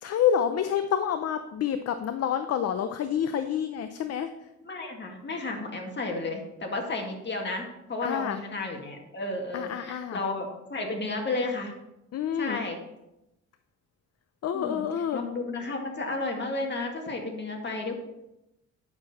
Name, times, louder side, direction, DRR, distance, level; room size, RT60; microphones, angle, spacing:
voice 1, 0.0-4.5 8.0-8.4 9.5-10.2 12.1-12.6 14.4-15.2, left 9 dB, 55° left, 10 dB, 0.6 m, -28 dB
voice 2, 4.6-11.7 12.4-12.8 14.5-14.9 15.1-18.0, left 3 dB, 35° left, 2 dB, 2.1 m, -32 dB
9.5 x 6.4 x 4.2 m, 0.90 s
cardioid pair, 90°, 30 cm